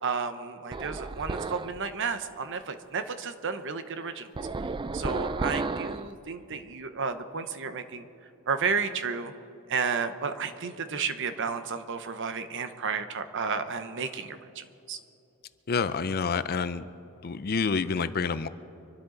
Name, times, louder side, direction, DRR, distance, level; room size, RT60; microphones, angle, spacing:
voice 1, 0.0-4.3 4.9-8.1 8.5-9.3 9.7-15.0, right 5 dB, 60° right, 10 dB, 0.9 m, -32 dB
sound 1, 0.7-1.8 4.4-6.1, right 3 dB, 20° right, 0.3 m, -32 dB
voice 2, 15.7-16.9 17.2-18.5, left 5 dB, 45° left, 13 dB, 0.5 m, -28 dB
25.0 x 12.0 x 3.9 m, 2.9 s
head